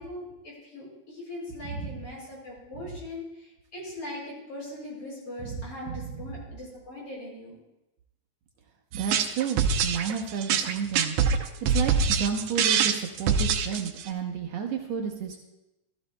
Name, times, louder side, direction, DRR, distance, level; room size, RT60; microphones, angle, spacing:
voice 1, 0.0-7.6, left 1 dB, 50° left, -4 dB, 5.6 m, -40 dB
voice 2, 1.7-2.0 5.4-5.6 5.9-6.1 8.9-11.1 11.6-15.4, right 7 dB, 70° right, 2 dB, 1.9 m, -31 dB
sound 1, 8.9-14.1, right 6 dB, 85° right, 2.1 m, -24 dB
14.5 x 14.0 x 2.2 m, 0.93 s
omnidirectional pair, 3.3 m